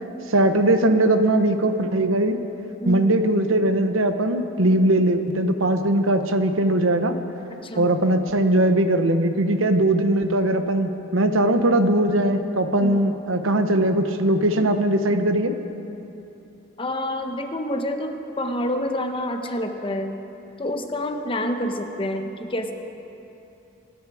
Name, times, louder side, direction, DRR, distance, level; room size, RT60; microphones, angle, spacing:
voice 1, 0.3-2.4 2.9-7.1 7.8-15.6, right 1 dB, 80° right, 8 dB, 1.0 m, -20 dB
voice 2, 2.8-3.3 7.6-7.9 12.8-13.2 16.8-20.2 20.6-22.7, left 1 dB, 25° left, 5 dB, 1.0 m, -28 dB
24.5 x 10.5 x 4.9 m, 2.9 s
head